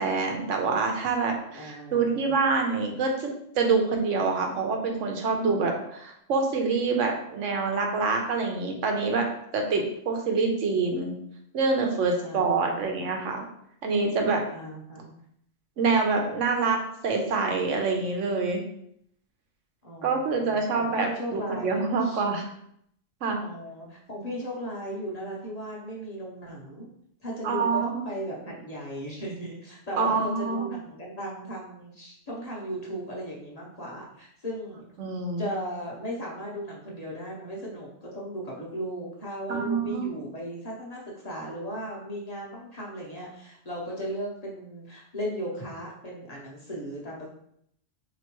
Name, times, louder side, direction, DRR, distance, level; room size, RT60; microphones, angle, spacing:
voice 1, 0.0-3.3 3.5-9.3 9.5-11.1 11.5-13.4 13.8-14.4 15.8-18.6 20.0-22.5 23.2-23.4 27.4-28.0 30.0-30.7 35.0-35.5 39.5-40.0, right 4 dB, 85° right, 2 dB, 1.1 m, -26 dB
voice 2, 1.6-2.4 12.2-13.1 14.5-15.1 19.8-22.2 23.4-26.8 27.2-34.9 35.4-47.3, equal, 35° left, -4 dB, 0.9 m, -36 dB
4.4 x 2.9 x 3.0 m, 0.70 s
omnidirectional pair, 1.2 m